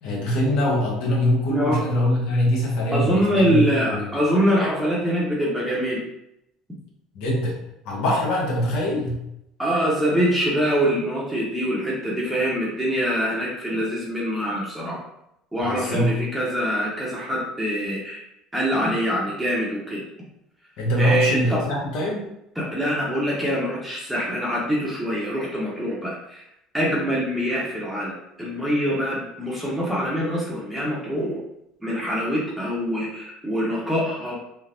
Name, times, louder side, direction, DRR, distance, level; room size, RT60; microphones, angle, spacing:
voice 1, 0.0-3.6 3.9-4.1 7.1-7.5 7.8-9.2 15.6-16.1 20.8-22.3, left 1 dB, 75° left, -2 dB, 0.9 m, -23 dB
voice 2, 1.5-1.8 2.9-6.0 9.6-15.0 15.5-18.2 18.5-20.0 21.0-21.6 22.6-26.4 26.7-28.1 28.4-31.4 31.8-34.3, equal, 5° right, -6 dB, 0.8 m, -24 dB
3.3 x 2.0 x 2.5 m, 0.82 s
supercardioid pair, 90°, 0 cm